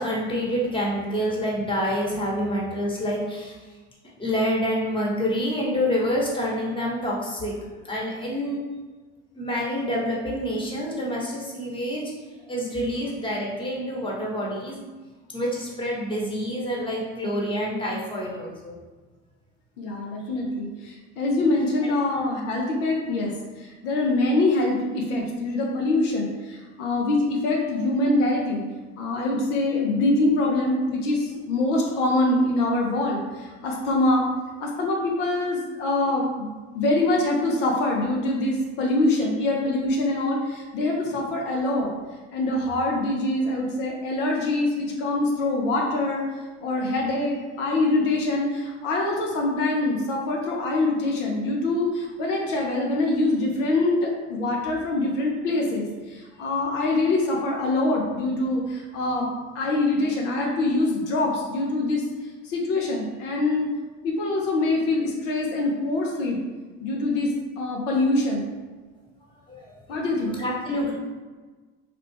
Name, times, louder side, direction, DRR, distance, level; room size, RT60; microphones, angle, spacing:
voice 1, 0.0-3.5 4.2-7.5 7.8-8.6 9.3-12.1 12.4-14.8 15.3-18.8 69.5-69.7 70.4-70.9, equal, 15° left, -4 dB, 1.1 m, -27 dB
voice 2, 19.8-28.6 29.0-34.3 34.6-36.5 36.7-41.9 42.3-46.2 46.6-59.3 59.5-62.0 62.4-63.7 64.0-66.4 66.8-68.5 69.9-70.4, left 2 dB, 75° left, -1 dB, 0.7 m, -24 dB
3.3 x 2.3 x 3.4 m, 1.3 s
hypercardioid pair, 70°, 36 cm